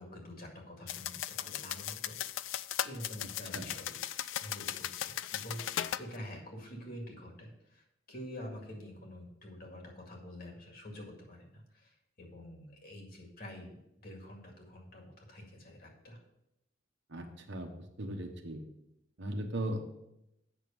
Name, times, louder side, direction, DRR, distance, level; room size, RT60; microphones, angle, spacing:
voice 1, 0.0-2.2 2.8-4.0 4.3-13.8 14.0-16.2, equal, 50° left, 1 dB, 2.0 m, -47 dB
sound 1, 0.9-6.1, left 11 dB, 70° left, 0.3 m, -37 dB
voice 2, 17.1-17.7 18.0-18.6 19.2-19.8, right 1 dB, 70° right, 4 dB, 1.1 m, -37 dB
8.1 x 6.1 x 5.2 m, 0.84 s
head